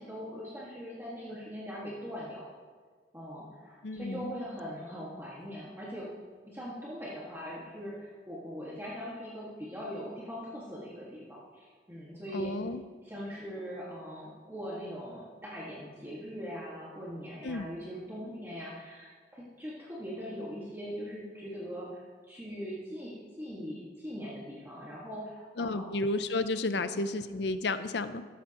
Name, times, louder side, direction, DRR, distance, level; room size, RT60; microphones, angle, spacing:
voice 1, 0.0-2.5 3.1-6.1 6.4-12.5 13.0-25.8 26.7-26.9, equal, 15° right, -7 dB, 1.8 m, -41 dB
voice 2, 3.8-4.3 12.3-12.8 17.4-17.7 25.6-28.2, left 2 dB, 75° left, 12 dB, 0.6 m, -32 dB
14.5 x 12.5 x 3.0 m, 1.5 s
head